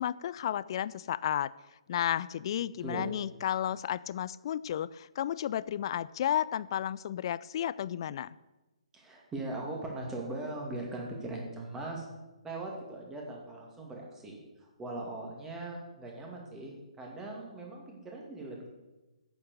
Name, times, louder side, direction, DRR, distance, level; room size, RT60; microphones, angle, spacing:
voice 1, 0.0-1.5 1.9-8.3, left 10 dB, 45° left, 19 dB, 0.4 m, -32 dB
voice 2, 2.8-3.1 8.9-12.1 12.4-18.7, right 2 dB, 10° right, -1 dB, 2.2 m, -40 dB
8.7 x 7.0 x 6.8 m, 1.1 s
figure-of-eight pair, 135°, 4 cm